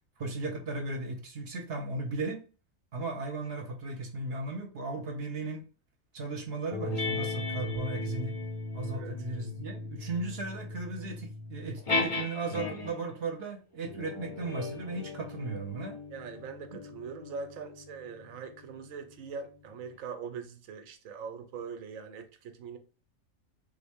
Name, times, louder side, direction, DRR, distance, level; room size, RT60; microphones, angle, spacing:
voice 1, 0.2-2.4 2.9-5.6 6.1-8.4 8.7-16.0 16.7-16.8, right 3 dB, 55° right, 0.8 m, -36 dB
sound 1, 6.7-13.1 13.9-18.8, left 3 dB, 50° left, 0.4 m, -37 dB
voice 2, 16.1-22.8, right 5 dB, 90° right, 1.0 m, -42 dB
3.5 x 2.1 x 3.4 m
omnidirectional pair, 1.4 m